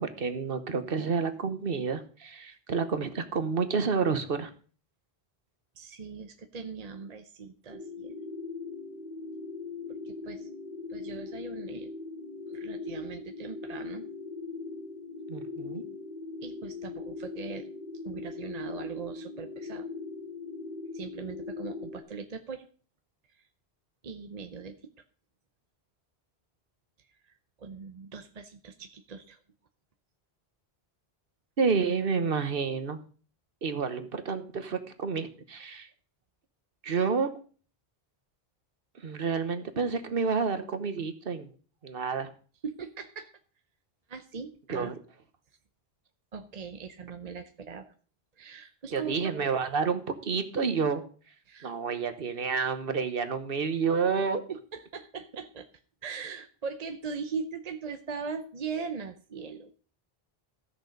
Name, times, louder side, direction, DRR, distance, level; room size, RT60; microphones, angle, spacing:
voice 1, 0.0-4.5 15.3-15.8 31.6-33.0 33.6-35.9 36.8-37.4 39.0-41.5 41.8-42.3 44.7-45.0 48.9-51.0 51.6-54.4, right 5 dB, 65° right, 10 dB, 1.3 m, -29 dB
voice 2, 5.8-8.1 10.0-10.5 10.9-11.9 12.5-14.0 16.4-17.7 18.0-19.9 20.9-22.7 23.3-23.4 24.0-24.9 27.2-29.4 42.6-43.3 44.1-44.9 46.3-47.9 48.4-49.3 51.5-51.7 54.5-55.7 56.0-59.7, right 5 dB, 45° right, 7 dB, 0.8 m, -40 dB
sound 1, 7.7-22.0, left 4 dB, 50° left, 1.7 m, -40 dB
14.5 x 6.6 x 5.2 m, 0.41 s
omnidirectional pair, 1.0 m